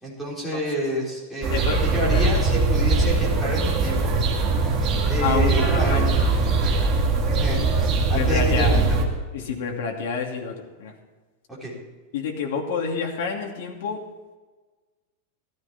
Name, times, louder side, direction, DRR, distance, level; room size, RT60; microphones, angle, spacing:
voice 1, 0.0-4.1 5.1-6.0 7.2-7.7 8.1-8.8 11.6-11.7, equal, ahead, -7 dB, 4.0 m, -29 dB
sound 1, 1.4-9.0, right 3 dB, 25° right, 2.1 m, -21 dB
voice 2, 1.5-2.3 5.2-6.3 8.1-8.7 9.3-10.9 12.1-14.0, left 6 dB, 60° left, 0 dB, 2.7 m, -28 dB
15.0 x 14.5 x 4.4 m, 1.3 s
supercardioid pair, 175°, 0 cm